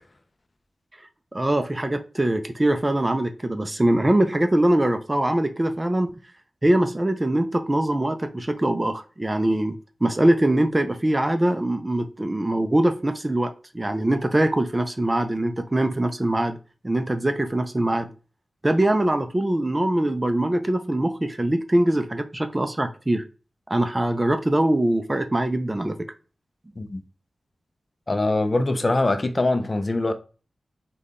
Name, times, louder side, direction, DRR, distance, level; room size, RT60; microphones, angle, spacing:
voice 1, 1.3-6.1 6.6-16.6 16.8-18.1 18.6-23.2 23.7-26.0, right 1 dB, 25° right, 0.4 m, -22 dB
voice 2, 28.1-30.1, left 2 dB, 35° left, 0.5 m, -23 dB
3.5 x 2.2 x 3.6 m
cardioid pair, 60°, 0 cm